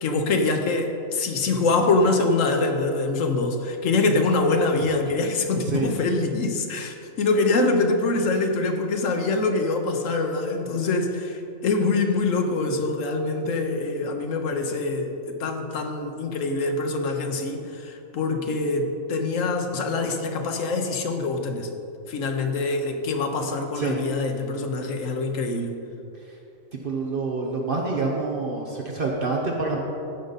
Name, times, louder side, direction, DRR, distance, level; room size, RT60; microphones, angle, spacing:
voice 1, 0.0-21.7 22.1-25.8, left 3 dB, 75° left, 4 dB, 1.2 m, -24 dB
voice 2, 26.8-29.8, right 3 dB, 45° right, 0 dB, 1.0 m, -27 dB
15.0 x 5.2 x 4.1 m, 2.8 s
omnidirectional pair, 1.4 m